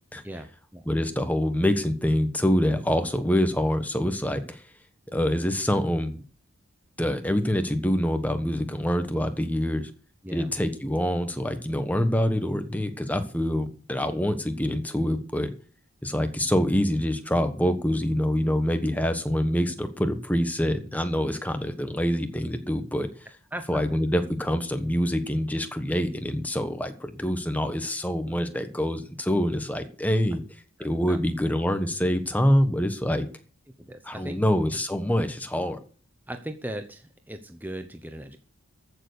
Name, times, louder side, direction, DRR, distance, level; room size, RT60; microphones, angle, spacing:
voice 1, 0.9-4.6 5.1-6.2 7.0-9.9 10.3-15.5 16.0-23.1 23.7-30.4 30.8-33.2 34.1-35.8, equal, 5° left, 8 dB, 1.3 m, -25 dB
voice 2, 30.8-31.2 33.8-34.4 36.3-38.4, right 1 dB, 10° right, 7 dB, 0.9 m, -38 dB
14.5 x 7.0 x 6.6 m, 0.40 s
head